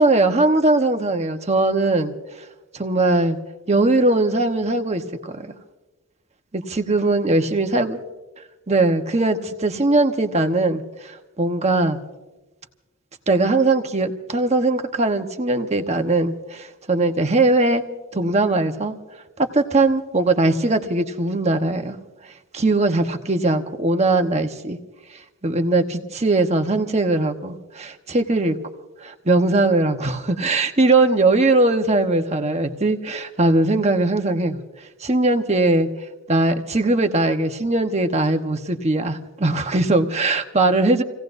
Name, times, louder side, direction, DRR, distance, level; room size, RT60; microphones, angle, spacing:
voice 1, 0.0-2.1 2.7-3.4 3.7-5.5 6.5-8.0 8.7-12.0 13.3-17.8 18.1-18.9 19.4-22.0 22.5-24.8 25.4-28.6 29.0-34.6 35.0-35.9 36.3-41.0, right 2 dB, 30° right, 5 dB, 1.1 m, -20 dB
28.5 x 17.5 x 2.7 m, 1.1 s
head